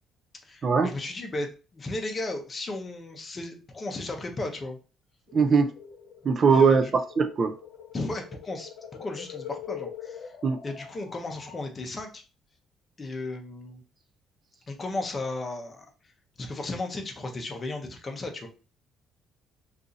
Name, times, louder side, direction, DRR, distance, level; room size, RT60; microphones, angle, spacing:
voice 1, 0.4-4.8 6.5-6.8 7.9-10.3 10.6-12.2 13.0-13.8 14.7-15.9 16.4-18.5, left 2 dB, 25° left, 0.6 m, -35 dB
sound 1, 5.3-11.7, left 8 dB, 80° left, 0.7 m, -44 dB
voice 2, 5.3-5.7 6.2-6.9 7.2-7.5 10.4-10.6, right 5 dB, 35° right, 0.3 m, -20 dB
2.6 x 2.5 x 3.8 m
cardioid pair, 155°, 0 cm